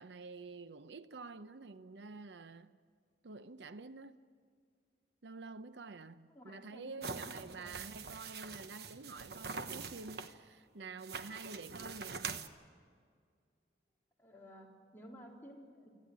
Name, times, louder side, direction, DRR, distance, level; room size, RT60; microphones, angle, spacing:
voice 1, 0.0-2.8 3.2-4.2 5.2-12.4, right 3 dB, 80° right, 0.7 m, -49 dB
voice 2, 6.3-7.3 7.6-7.8 14.2-15.9, equal, 10° left, 3.8 m, -54 dB
sound 1, 7.0-10.3 11.0-12.5, right 5 dB, 65° right, 1.1 m, -44 dB
25.5 x 14.0 x 9.5 m
head